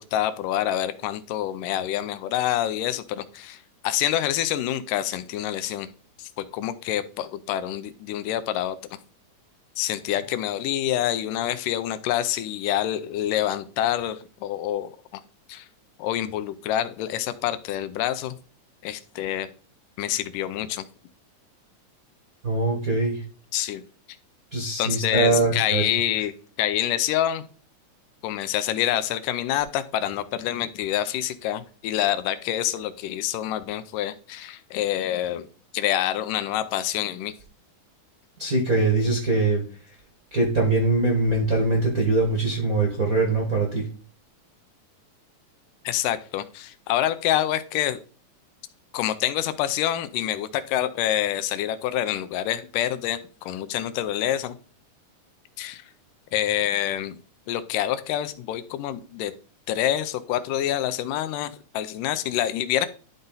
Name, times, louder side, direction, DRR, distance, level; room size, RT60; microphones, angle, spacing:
voice 1, 0.0-5.9 6.2-8.8 9.8-14.9 15.5-15.7 16.0-18.4 18.8-19.5 20.0-20.9 23.5-23.8 24.8-26.3 26.6-27.4 28.2-35.5 35.7-37.3 45.8-48.0 48.9-54.6 55.6-55.8 56.3-57.2 57.5-59.3 59.7-62.9, left 12 dB, 85° left, 12 dB, 2.3 m, -27 dB
voice 2, 22.4-23.2 24.5-25.8 38.4-39.6 40.3-43.9, right 3 dB, 45° right, -2 dB, 1.2 m, -22 dB
11.5 x 4.0 x 3.9 m, 0.39 s
omnidirectional pair, 3.7 m